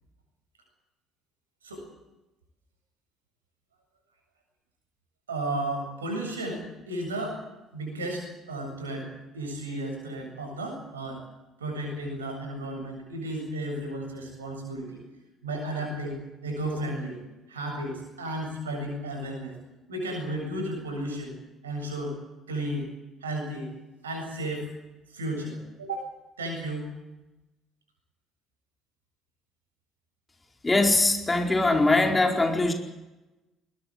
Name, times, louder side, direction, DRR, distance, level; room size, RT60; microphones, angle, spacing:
voice 1, 5.3-7.4 7.7-9.1 9.3-11.2 11.6-15.0 15.4-17.2 17.5-19.6 19.9-21.3 21.6-22.2 22.5-22.9 23.2-23.7 24.0-24.7 25.1-26.9, right 1 dB, 85° right, 2 dB, 7.6 m, -33 dB
voice 2, 30.6-32.7, left 2 dB, 20° left, 2 dB, 4.5 m, -22 dB
21.0 x 21.0 x 7.9 m, 1.0 s
figure-of-eight pair, 50°, 0 cm